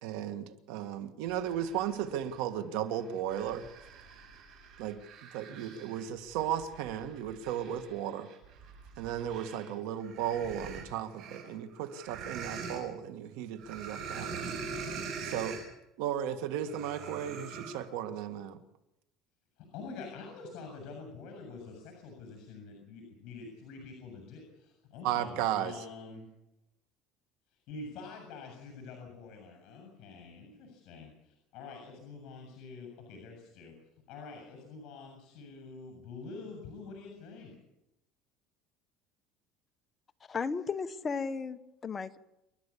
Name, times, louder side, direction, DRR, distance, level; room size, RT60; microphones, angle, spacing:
voice 1, 0.0-3.7 4.8-8.3 9.0-14.5 15.2-15.6 16.0-18.6 25.0-25.8, right 10 dB, 85° right, 9 dB, 1.9 m, -35 dB
sound 1, 1.3-2.4 2.9-9.7 10.0-12.8 13.6-15.7 16.6-17.8, right 5 dB, 55° right, 7.4 m, -44 dB
voice 2, 19.6-26.3 27.7-33.7 34.1-37.5, left 4 dB, 55° left, 3 dB, 7.2 m, -46 dB
voice 3, 40.3-42.2, left 5 dB, 25° left, 8 dB, 1.1 m, -35 dB
28.0 x 11.5 x 8.6 m, 0.87 s
cardioid pair, 140°, 0 cm